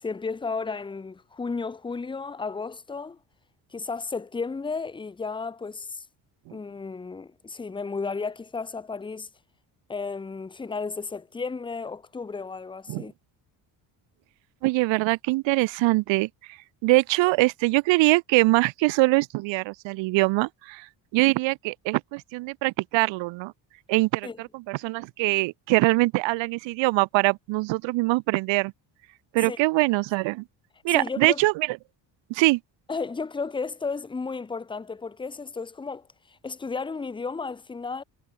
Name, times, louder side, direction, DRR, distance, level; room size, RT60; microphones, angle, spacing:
voice 1, 0.0-3.2 3.7-6.0 6.5-9.3 9.9-13.1 24.2-24.4 29.5-29.6 30.9-31.4 32.9-38.0, left 4 dB, 10° left, 1.0 m, -33 dB
voice 2, 14.6-16.3 16.8-20.9 21.1-23.5 23.9-28.7 29.3-30.4 30.8-31.7 32.3-32.6, right 22 dB, 80° right, 0.9 m, -23 dB
cardioid pair, 170°, 44 cm